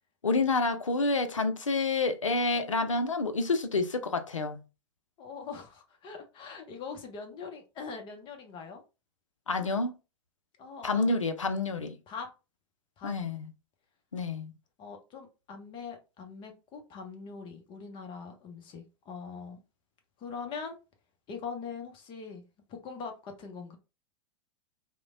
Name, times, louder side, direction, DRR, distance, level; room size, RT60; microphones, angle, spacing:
voice 1, 0.2-4.6 9.5-10.0 10.8-11.9 13.0-13.5 14.1-14.5, left 3 dB, 85° left, 0.4 m, -28 dB
voice 2, 5.2-8.8 10.6-11.2 12.1-12.3 13.0-13.1 14.8-19.6 20.2-20.8 21.3-23.8, left 5 dB, 30° left, 0.7 m, -42 dB
3.0 x 2.1 x 2.5 m
figure-of-eight pair, 95°, 16 cm